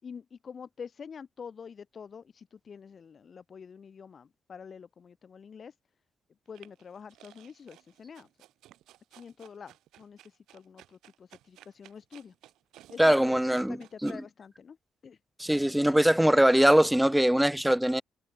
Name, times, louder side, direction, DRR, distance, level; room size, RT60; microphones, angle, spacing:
voice 1, 0.0-5.8 6.5-8.3 9.1-12.3 12.9-14.8 15.0-15.2, left 6 dB, 45° left, 6.2 m, -47 dB
sound 1, 6.5-14.2, right 14 dB, 85° right, 5.4 m, -57 dB
voice 2, 13.0-13.8 14.0-14.1 15.4-18.0, right 1 dB, 5° right, 0.5 m, -22 dB
cardioid pair, 90°, 0 cm